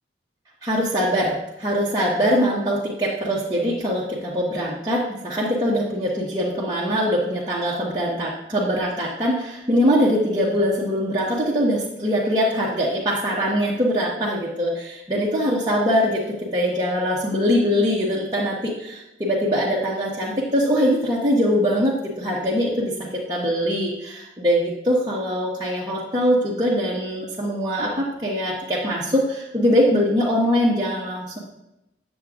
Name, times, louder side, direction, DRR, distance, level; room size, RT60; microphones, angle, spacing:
voice 1, 0.6-16.2 16.5-31.4, equal, 20° right, -7 dB, 1.0 m, -22 dB
9.2 x 7.0 x 2.4 m, 0.91 s
head